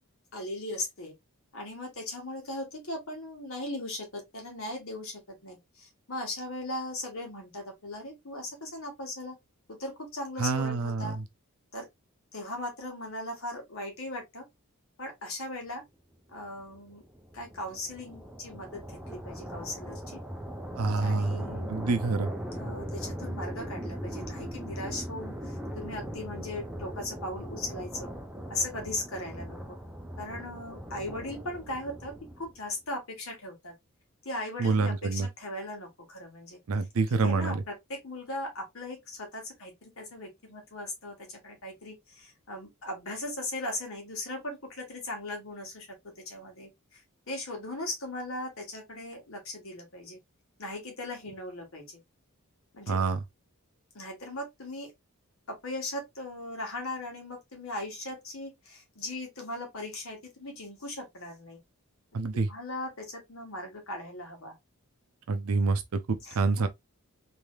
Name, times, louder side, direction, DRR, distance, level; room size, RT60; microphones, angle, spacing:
voice 1, 0.3-1.1 1.5-9.4 9.7-11.2 11.7-11.9 12.3-14.5 15.0-15.8 16.3-17.0 17.3-20.2 21.0-22.0 22.5-28.1 28.5-29.8 30.2-33.7 34.2-36.6 37.2-47.0 47.3-50.2 50.6-52.0 52.7-53.0 53.9-54.9 55.5-61.6 62.3-64.5 66.2-66.4, left 1 dB, 65° left, 1.4 m, -38 dB
voice 2, 10.4-11.2 20.8-21.4 21.7-22.3 34.6-35.3 36.7-37.6 52.9-53.2 62.1-62.5 65.3-66.7, right 4 dB, 75° right, 0.5 m, -27 dB
sound 1, 16.4-32.7, equal, 5° right, 0.4 m, -39 dB
3.2 x 2.7 x 2.2 m
head